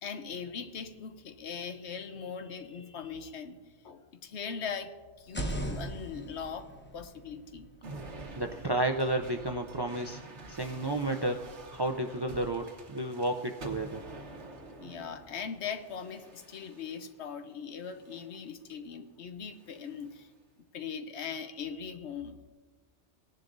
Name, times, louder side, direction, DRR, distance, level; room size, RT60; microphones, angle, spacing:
voice 1, 0.0-7.7 14.8-20.3 20.7-22.4, left 6 dB, 70° left, 9 dB, 1.1 m, -40 dB
sound 1, 5.2-9.0, right 1 dB, 10° left, 0.8 m, -40 dB
sound 2, 7.8-17.2 17.9-18.4 19.5-20.2, right 2 dB, 75° right, 1.4 m, -48 dB
voice 2, 8.4-10.2 10.5-11.4 11.7-14.0, right 1 dB, 45° right, 5 dB, 0.3 m, -31 dB
18.5 x 10.5 x 2.6 m, 1.3 s
omnidirectional pair, 1.2 m